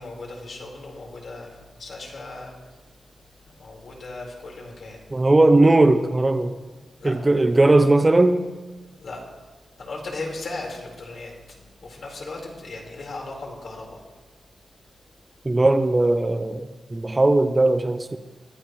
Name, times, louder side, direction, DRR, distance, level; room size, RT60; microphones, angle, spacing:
voice 1, 0.0-2.5 3.6-5.1 7.0-7.2 9.0-9.2 9.8-11.3 11.8-14.0, left 2 dB, 60° left, -1 dB, 4.3 m, -37 dB
voice 2, 5.1-6.5 7.0-8.4 15.4-18.2, right 2 dB, 20° right, 10 dB, 0.6 m, -18 dB
24.0 x 15.0 x 3.1 m, 1.3 s
wide cardioid pair, 115°, 0 cm